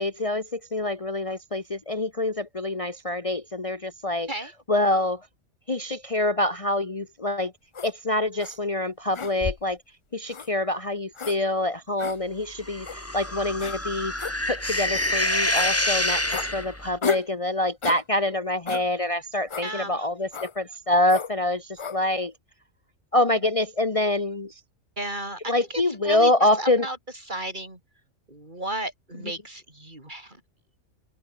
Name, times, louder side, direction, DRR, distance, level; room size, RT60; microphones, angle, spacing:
voice 1, 0.0-4.3 4.7-5.2 5.7-7.5 7.8-9.8 10.1-22.3 23.1-24.5 25.5-26.9, left 1 dB, 25° left, 1.4 m, -26 dB
sound 1, 7.7-7.9 8.4-8.6 9.1-9.7 10.3-10.5 11.1-11.4 12.0-12.2 12.8-13.0 13.6-13.8 14.2-14.3 14.9-15.1 15.5-15.7 16.3-16.5 17.0-17.3 17.8-18.0 18.7-18.9 19.5-19.7 20.3-20.5 21.1-21.3 21.8-22.0, left 6 dB, 50° left, 0.3 m, -33 dB
sound 2, 12.6-16.9, left 1 dB, 10° left, 2.3 m, -27 dB
voice 2, 19.6-20.0 25.0-27.0 27.3-27.8 28.3-30.4, right 1 dB, 35° right, 4.8 m, -34 dB
omnidirectional pair, 1.4 m